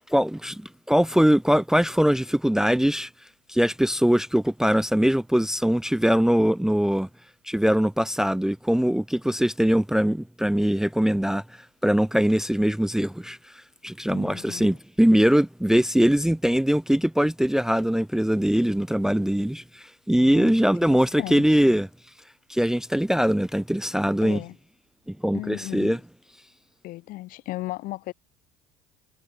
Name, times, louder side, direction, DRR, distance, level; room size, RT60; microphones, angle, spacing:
voice 1, 0.1-3.1 3.5-7.1 7.5-11.4 11.8-13.4 13.8-21.9 22.5-24.4 25.1-26.0, equal, 5° right, 0.6 m, -22 dB
voice 2, 14.1-14.8 20.2-20.5 20.8-21.6 24.2-24.6 25.3-26.0 26.8-28.1, left 18 dB, 60° left, 1.0 m, -36 dB
supercardioid pair, 80°, 16 cm